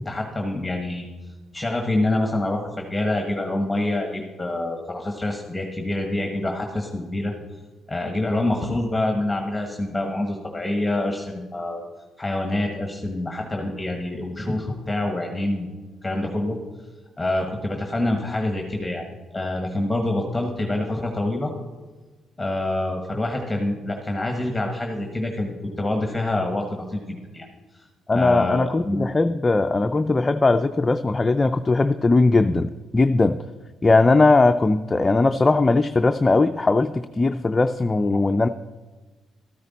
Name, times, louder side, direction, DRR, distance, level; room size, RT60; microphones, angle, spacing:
voice 1, 0.0-1.0 1.5-7.3 7.9-11.8 12.2-15.7 16.0-16.6 17.2-19.0 19.3-21.5 22.4-27.5 28.1-29.1, left 1 dB, 10° left, 3 dB, 1.4 m, -26 dB
voice 2, 28.1-33.4 33.8-38.5, left 3 dB, 25° left, 8 dB, 0.4 m, -19 dB
13.0 x 9.5 x 4.1 m, 1.3 s
cardioid pair, 90°, 0 cm